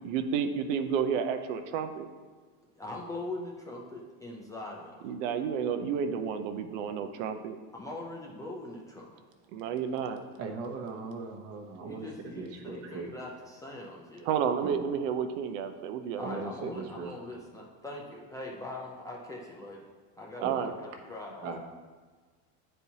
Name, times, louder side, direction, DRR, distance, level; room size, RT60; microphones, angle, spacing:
voice 1, 0.0-2.1 5.0-7.6 9.5-10.2 14.3-16.4 20.4-20.7, right 7 dB, 80° right, 7 dB, 0.7 m, -31 dB
voice 2, 2.8-5.1 7.7-9.1 11.8-14.3 16.1-19.9 20.2-21.5, left 2 dB, 10° left, -3 dB, 0.4 m, -42 dB
voice 3, 10.4-13.1 14.6-14.8 16.2-17.1 20.4-20.7 21.4-21.6, right 4 dB, 40° right, 3 dB, 0.9 m, -38 dB
9.7 x 4.4 x 2.8 m, 1.4 s
cardioid pair, 155°, 37 cm